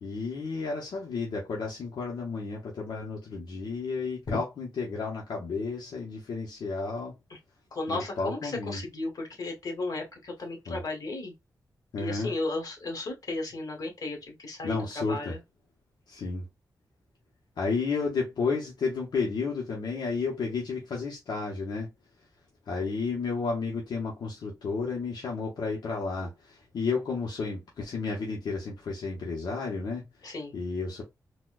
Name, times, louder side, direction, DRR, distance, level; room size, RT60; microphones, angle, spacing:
voice 1, 0.0-7.1 7.9-8.8 10.7-10.8 11.9-12.3 14.6-15.4 16.1-16.4 17.6-21.9 22.7-30.0 30.5-31.0, left 4 dB, 75° left, 0.9 m, -32 dB
voice 2, 7.7-11.3 12.0-15.4 30.2-30.5, left 2 dB, 55° left, 1.5 m, -34 dB
4.1 x 2.3 x 2.4 m
wide cardioid pair, 110°, 7 cm